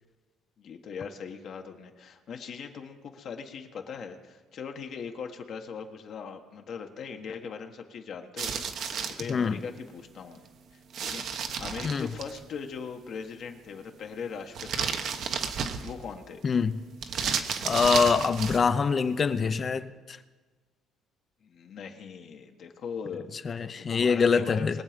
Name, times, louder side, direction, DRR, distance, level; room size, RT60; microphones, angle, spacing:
voice 1, 0.6-10.5 10.7-11.2 11.6-15.2 15.8-16.4 21.4-24.8, left 6 dB, 55° left, 1.3 m, -40 dB
sound 1, 8.4-9.3 10.9-12.4 14.5-16.1 17.0-18.7, right 6 dB, 60° right, 1.1 m, -32 dB
voice 2, 16.4-16.8 17.6-20.2 23.4-24.8, left 5 dB, 35° left, 0.7 m, -25 dB
22.0 x 7.5 x 5.1 m
cardioid pair, 105°, 0 cm